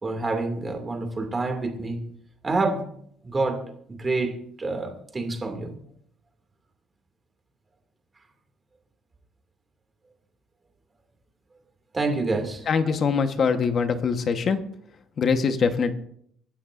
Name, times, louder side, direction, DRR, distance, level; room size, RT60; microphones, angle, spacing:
voice 1, 0.0-2.1 2.4-2.9 3.2-3.6 4.0-5.7 11.9-12.9, right 3 dB, 20° right, 4 dB, 2.4 m, -27 dB
voice 2, 12.7-14.6 15.2-15.9, left 5 dB, 40° left, 8 dB, 1.2 m, -23 dB
25.0 x 12.5 x 2.6 m, 0.68 s
cardioid pair, 150°, 0 cm